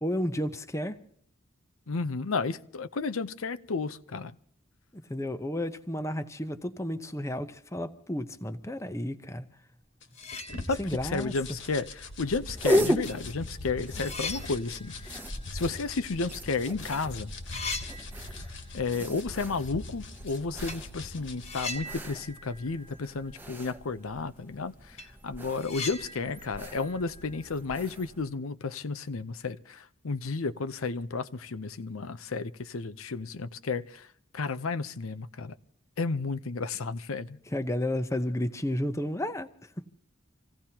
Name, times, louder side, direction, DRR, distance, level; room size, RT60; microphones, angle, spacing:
voice 1, 0.0-1.0 4.9-9.5 10.7-11.3 37.5-39.9, left 1 dB, 15° left, 0.7 m, -32 dB
voice 2, 1.9-4.3 10.7-15.2 15.5-17.3 18.7-24.7 25.2-34.0 34.3-35.5 36.0-37.4, left 4 dB, 85° left, 0.7 m, -32 dB
sound 1, 9.8-9.9 10.1-11.2 11.5-11.6 12.6-12.7 13.1-16.5 16.8-17.0 17.3-18.8 19.1-19.2 20.7-20.9 21.4-23.6 23.8-23.9 24.4-24.5 24.8-28.0, left 3 dB, 30° left, 1.4 m, -41 dB
sound 2, 10.0-21.8, left 2 dB, 65° left, 1.7 m, -42 dB
sound 3, 12.2-28.3, equal, 10° right, 1.0 m, -36 dB
27.0 x 16.5 x 2.9 m
head